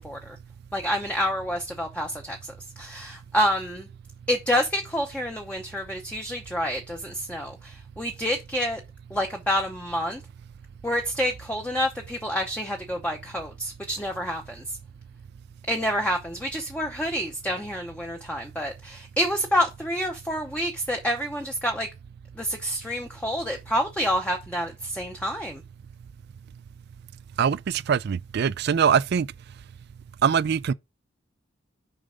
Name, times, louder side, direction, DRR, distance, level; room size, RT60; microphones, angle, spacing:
voice 1, 0.0-0.4 0.7-2.4 2.8-3.9 4.3-8.8 9.1-10.2 10.8-14.6 15.7-21.9 22.4-25.6, equal, 5° left, 0.7 m, -28 dB
voice 2, 27.4-29.3 30.2-30.7, right 7 dB, 50° right, 0.3 m, -22 dB
6.5 x 5.2 x 3.7 m
head